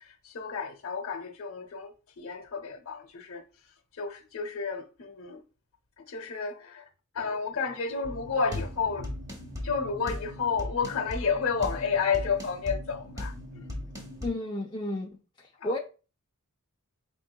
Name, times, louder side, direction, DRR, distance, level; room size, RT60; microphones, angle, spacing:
voice 1, 0.0-3.4 3.9-5.4 6.0-6.9 7.1-9.1 9.6-13.7 15.6-15.7, left 5 dB, 65° left, 0.7 m, -31 dB
sound 1, 8.0-14.3, left 1 dB, 15° right, 0.9 m, -38 dB
voice 2, 14.2-15.8, left 1 dB, 20° left, 0.3 m, -33 dB
4.4 x 3.7 x 2.2 m
head